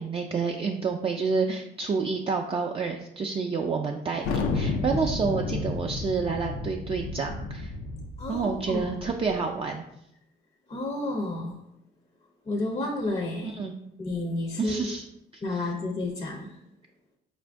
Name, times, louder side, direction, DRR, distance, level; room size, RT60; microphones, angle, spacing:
voice 1, 0.0-7.7 8.3-9.9 13.4-13.7 14.6-15.1 15.3-15.7, right 5 dB, 30° right, 1 dB, 0.3 m, -29 dB
Thunder, 4.2-9.4, left 3 dB, 85° left, 0.5 m, -31 dB
voice 2, 8.2-8.9 10.7-11.6 12.5-13.6 14.0-14.8 15.4-16.6, left 2 dB, 30° left, 1 dB, 0.5 m, -31 dB
4.3 x 2.5 x 3.4 m, 0.80 s
cardioid pair, 90°, 20 cm